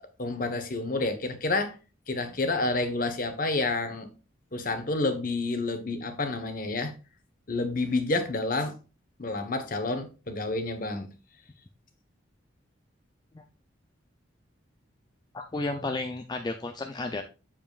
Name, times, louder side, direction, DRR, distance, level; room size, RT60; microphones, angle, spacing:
voice 1, 0.2-1.8 2.1-4.1 4.5-6.9 7.5-8.8 9.2-11.1, left 2 dB, 45° left, 1.1 m, -29 dB
voice 2, 15.3-17.2, left 2 dB, 20° left, 0.4 m, -32 dB
7.3 x 7.3 x 2.4 m
head